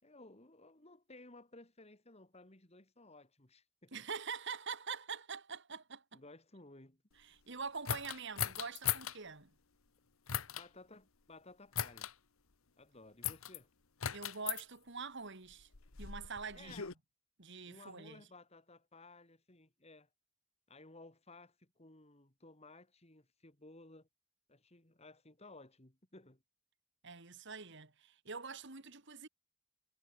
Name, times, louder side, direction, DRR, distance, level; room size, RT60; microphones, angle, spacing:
voice 1, 0.0-4.0 6.1-7.0 10.5-12.1 12.8-13.7 16.5-16.9 17.7-20.1 20.7-24.1 24.5-26.4, left 2 dB, 30° left, 3.2 m, -57 dB
voice 2, 3.9-6.2 7.2-9.5 14.1-15.7 16.0-16.8 17.4-18.3 27.0-29.3, right 5 dB, 60° right, 2.7 m, -45 dB
sound 1, 7.9-9.2 10.3-10.7 11.7-12.1 13.2-13.6 14.0-14.6 15.5-16.9, left 9 dB, 90° left, 1.4 m, -38 dB
head